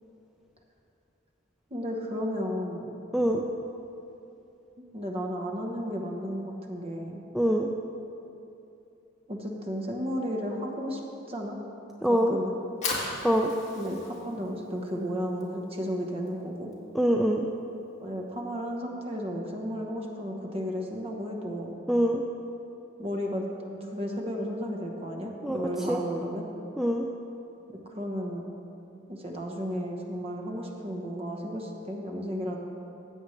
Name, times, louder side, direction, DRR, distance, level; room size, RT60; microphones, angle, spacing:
voice 1, 1.7-3.0 4.9-7.2 9.3-11.0 11.3-11.6 12.1-12.6 13.7-16.7 18.0-21.8 23.0-26.4 27.8-28.4 29.1-32.6, equal, 30° right, 1 dB, 1.1 m, -33 dB
voice 2, 3.1-3.4 7.3-7.7 12.0-12.4 13.2-13.5 16.9-17.5 21.9-22.2 25.4-25.6 25.9-26.0 26.8-27.1, equal, ahead, 0 dB, 0.3 m, -24 dB
Fire, 12.5-18.7, left 3 dB, 35° left, 1.7 m, -39 dB
15.5 x 7.9 x 3.2 m, 2.8 s
head